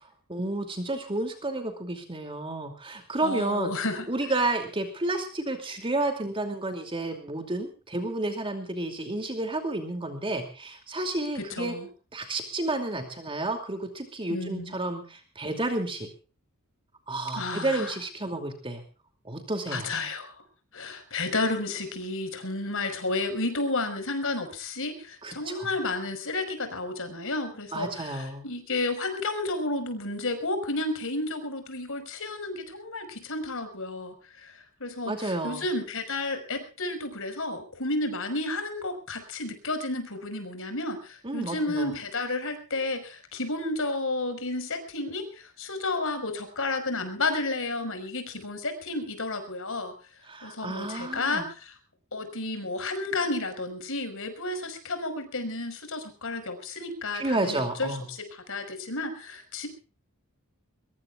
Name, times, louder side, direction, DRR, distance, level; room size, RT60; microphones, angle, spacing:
voice 1, 0.3-3.7 4.1-11.7 12.1-16.1 17.1-18.8 19.2-19.9 25.2-25.7 27.7-28.4 35.1-35.7 41.2-41.9 50.2-51.5 57.1-58.1, right 2 dB, 25° right, 5 dB, 2.7 m, -31 dB
voice 2, 3.2-4.1 11.4-11.9 14.3-14.8 17.3-17.9 19.7-20.3 20.7-49.9 50.4-51.7 52.1-59.7, left 2 dB, 65° left, 8 dB, 5.3 m, -32 dB
23.0 x 22.0 x 2.4 m, 0.36 s
head